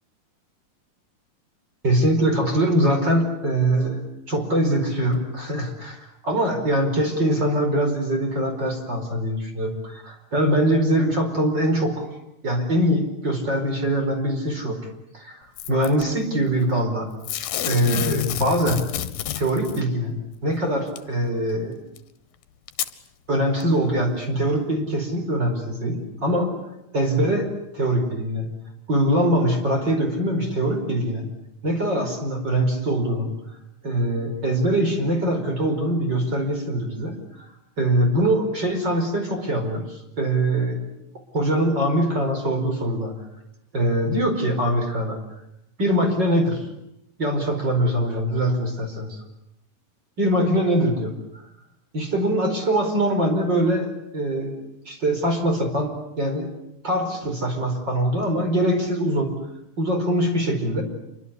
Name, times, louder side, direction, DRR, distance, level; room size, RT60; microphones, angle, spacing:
voice 1, 1.8-4.0 4.3-12.1 12.4-14.8 15.1-17.1 17.6-18.9 19.3-20.2 20.4-21.8 23.3-26.5 26.9-27.5 27.7-28.5 28.9-31.3 31.6-33.3 33.8-37.5 37.8-40.8 41.3-43.1 43.7-45.2 45.8-46.7 47.2-49.2 50.2-51.1 51.9-56.5 56.8-59.3 59.8-60.8, right 1 dB, 25° right, 4 dB, 5.1 m, -23 dB
Packing tape duct tape / Tearing, 15.6-16.0 17.2-19.8 21.0-21.1 22.0-22.1 22.7-22.9 23.6-23.7, left 12 dB, 85° left, 3.3 m, -29 dB
28.0 x 24.0 x 8.4 m, 0.82 s
omnidirectional pair, 4.6 m